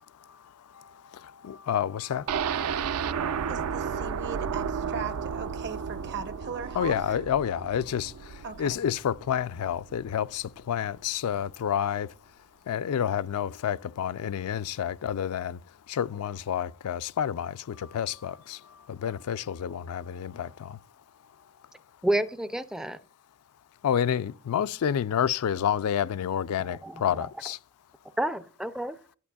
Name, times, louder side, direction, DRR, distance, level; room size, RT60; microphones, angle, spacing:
voice 1, 1.4-2.2 6.7-8.1 8.6-12.1 12.7-15.6 15.9-18.6 18.9-20.8 23.8-27.6, left 9 dB, 75° left, 0.4 m, -29 dB
sound 1, 2.3-10.1 10.5-10.6 11.0-11.1, right 7 dB, 70° right, 0.4 m, -33 dB
voice 2, 3.5-7.0 8.4-8.8, right 5 dB, 55° right, 0.8 m, -38 dB
voice 3, 22.0-23.0 26.6-27.0 28.2-29.0, right 1 dB, 5° right, 0.3 m, -29 dB
11.0 x 8.5 x 2.3 m
head